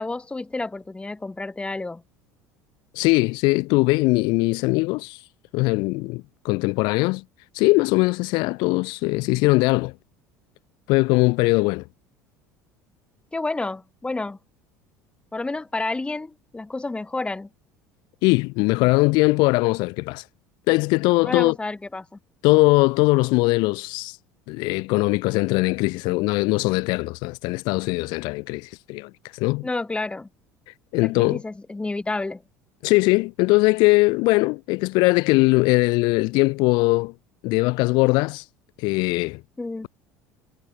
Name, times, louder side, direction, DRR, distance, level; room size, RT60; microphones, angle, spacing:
voice 1, 0.0-2.0 13.3-14.4 15.3-17.5 21.2-22.1 29.6-30.3 31.0-32.4 39.6-39.9, left 3 dB, 10° left, 1.1 m, -30 dB
voice 2, 2.9-5.2 5.5-7.2 7.5-9.9 10.9-11.9 18.2-20.2 20.7-21.6 22.4-24.2 24.5-29.7 30.9-31.4 32.8-37.1 37.4-38.4 38.8-39.4, left 25 dB, 60° left, 0.8 m, -20 dB
figure-of-eight pair, 65°, 9 cm